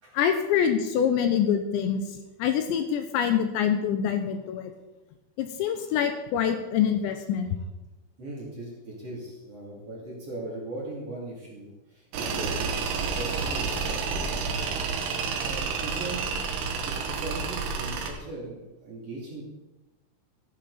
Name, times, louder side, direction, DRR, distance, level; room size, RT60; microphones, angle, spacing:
voice 1, 0.1-4.7 5.4-7.6, left 8 dB, 80° left, 7 dB, 2.8 m, -25 dB
voice 2, 8.2-12.7 13.0-14.6 15.1-16.4 16.8-19.4, right 2 dB, 35° right, -5 dB, 3.2 m, -39 dB
Tools, 12.1-18.1, right 5 dB, 70° right, 2.9 m, -30 dB
14.0 x 11.0 x 4.2 m, 1.1 s
omnidirectional pair, 5.5 m